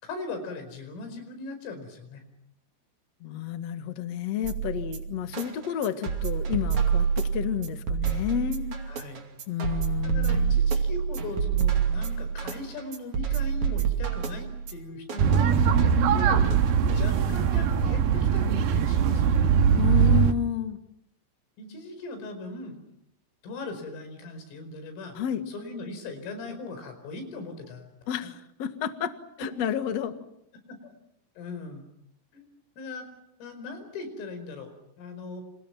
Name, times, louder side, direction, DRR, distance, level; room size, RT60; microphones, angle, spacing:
voice 1, 0.0-2.2 8.9-9.3 10.0-19.5 21.6-22.8 23.4-25.2 25.5-27.9 30.8-30.9 31.4-31.9 32.3-32.5 32.8-33.1 33.4-35.4, left 3 dB, 85° left, 8 dB, 7.5 m, -39 dB
voice 2, 3.2-8.8 9.5-10.6 19.7-20.8 25.1-25.5 28.1-29.1 29.4-30.1, left 9 dB, 60° left, 8 dB, 1.7 m, -30 dB
sound 1, 4.4-17.4, right 6 dB, 45° right, 3.1 m, -28 dB
sound 2, 15.2-20.3, right 7 dB, 65° right, 3.0 m, -22 dB
29.5 x 28.0 x 6.0 m, 0.79 s
omnidirectional pair, 5.7 m